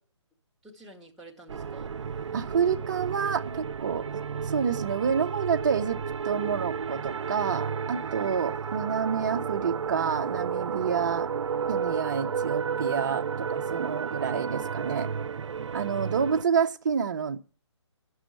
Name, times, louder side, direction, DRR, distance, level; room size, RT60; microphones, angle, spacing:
voice 1, 0.6-1.9 8.0-8.3 13.9-14.8, right 2 dB, ahead, 1.3 m, -51 dB
sound 1, 1.5-16.4, right 6 dB, 80° right, 0.5 m, -32 dB
voice 2, 2.3-4.1 4.4-6.0 6.2-11.3 11.7-15.1 15.7-17.4, right 6 dB, 40° right, 0.8 m, -28 dB
11.5 x 6.3 x 8.9 m
hypercardioid pair, 165°, 15 cm